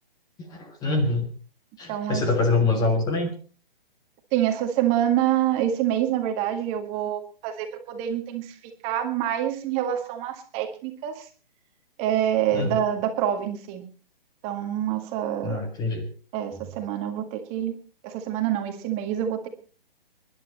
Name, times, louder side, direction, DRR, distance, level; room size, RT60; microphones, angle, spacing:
voice 1, 0.5-1.2 1.8-3.3 12.5-12.8 15.4-16.1, left 3 dB, 15° left, 7 dB, 1.6 m, -24 dB
voice 2, 1.9-2.2 4.3-8.5 8.8-11.3 12.0-13.8 14.4-15.6 16.3-17.8 18.0-19.5, right 11 dB, 20° right, 5 dB, 1.9 m, -26 dB
24.5 x 11.5 x 4.2 m, 0.38 s
figure-of-eight pair, 140°, 30 cm